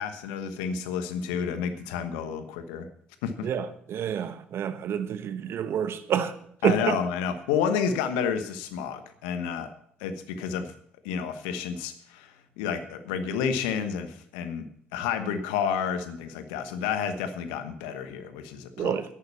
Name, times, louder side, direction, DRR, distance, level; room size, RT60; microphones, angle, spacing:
voice 1, 0.0-2.9 3.2-3.5 6.6-9.7 10.0-10.7 11.0-19.0, left 7 dB, 75° left, 1.2 m, -30 dB
voice 2, 3.4-6.3 6.6-7.0 18.8-19.0, right 8 dB, 55° right, 1.1 m, -28 dB
11.0 x 9.0 x 7.1 m
hypercardioid pair, 50°, 5 cm